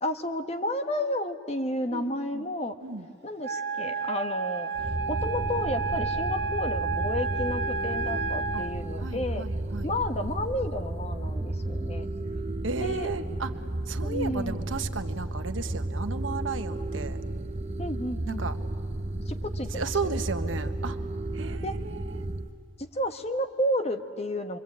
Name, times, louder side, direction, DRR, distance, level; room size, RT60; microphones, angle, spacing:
voice 1, 0.0-2.8 3.2-4.7 5.1-9.5 9.8-12.1 12.8-13.1 14.0-14.6 17.8-18.5 19.3-19.9 21.6-21.8 22.8-24.6, left 1 dB, 35° left, 7 dB, 1.3 m, -31 dB
voice 2, 1.9-2.5 2.8-3.1 8.5-8.6 9.0-9.9 12.6-13.5 13.9-17.2 18.3-18.6 19.7-21.0 21.3-22.3, right 4 dB, 90° right, 8 dB, 1.3 m, -34 dB
Wind instrument woodwind instrument, 3.4-8.8, right 5 dB, 55° right, 1.2 m, -31 dB
sound 1, 4.7-22.5, right 1 dB, 35° right, 0.8 m, -33 dB
27.0 x 24.0 x 8.7 m, 2.3 s
head